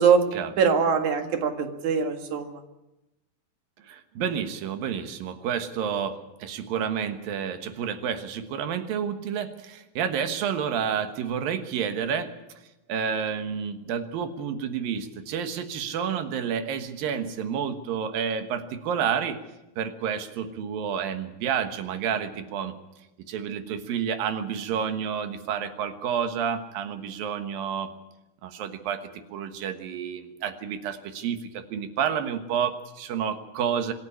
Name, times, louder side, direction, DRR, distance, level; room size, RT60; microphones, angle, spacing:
voice 1, 0.6-2.5, right 6 dB, 60° right, 5 dB, 3.1 m, -22 dB
voice 2, 3.8-12.3 12.9-19.4 19.8-22.7 23.3-27.9 28.4-33.9, right 7 dB, 85° right, 8 dB, 3.1 m, -30 dB
26.0 x 10.5 x 9.9 m, 0.96 s
omnidirectional pair, 4.0 m